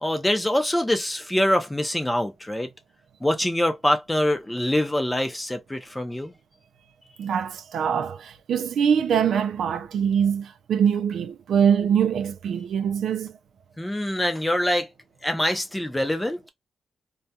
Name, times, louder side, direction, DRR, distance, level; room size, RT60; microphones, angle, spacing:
voice 1, 0.0-2.7 3.2-6.3 13.8-14.9 15.2-16.5, left 1 dB, 10° left, 0.6 m, -24 dB
voice 2, 7.2-13.3, right 7 dB, 90° right, 0.3 m, -23 dB
2.3 x 2.3 x 2.7 m
wide cardioid pair, 120°, 0 cm